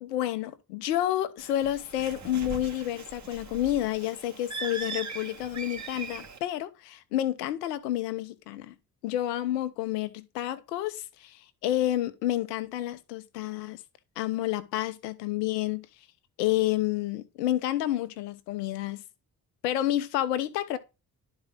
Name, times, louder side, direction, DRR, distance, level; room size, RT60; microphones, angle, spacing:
voice 1, 0.0-8.7 9.0-13.8 14.2-15.9 16.4-19.0 19.6-20.8, left 13 dB, 85° left, 0.9 m, -29 dB
Bird, 1.4-6.4, right 4 dB, 35° right, 2.0 m, -40 dB
11.5 x 4.6 x 3.8 m
hypercardioid pair, 40°, 47 cm